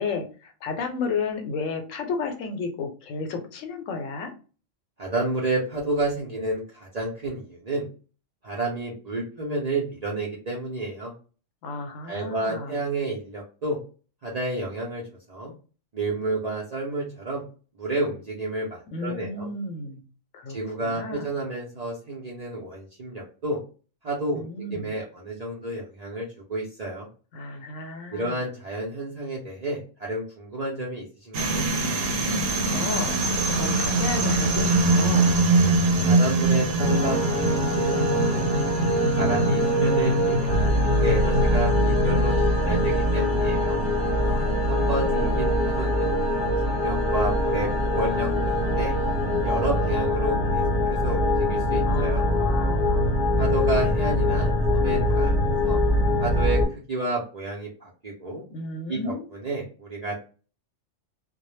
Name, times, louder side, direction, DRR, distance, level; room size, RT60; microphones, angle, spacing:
voice 1, 0.0-4.3 11.6-12.8 18.9-20.0 20.3-20.6 20.8-21.3 24.3-24.9 27.3-28.5 32.7-35.3 39.1-39.7 44.2-45.4 51.8-53.3 58.5-59.2, left 3 dB, 85° left, 5 dB, 1.0 m, -33 dB
voice 2, 5.0-7.9 8.4-11.1 12.1-13.8 14.2-15.0 15.3-15.5 15.9-17.4 17.8-19.5 20.5-23.6 24.0-27.1 28.1-31.7 36.0-38.5 39.1-40.7 41.0-43.8 44.6-46.2 46.6-48.3 48.7-48.9 49.4-50.6 50.9-52.3 53.4-55.8 56.2-58.4 58.9-60.2, right 2 dB, 50° right, -4 dB, 0.4 m, -30 dB
sound 1, 31.3-49.8, right 2 dB, 80° right, 1.0 m, -25 dB
sound 2, 36.8-56.6, left 1 dB, 50° left, 0.8 m, -23 dB
2.1 x 2.0 x 3.0 m, 0.36 s
omnidirectional pair, 1.3 m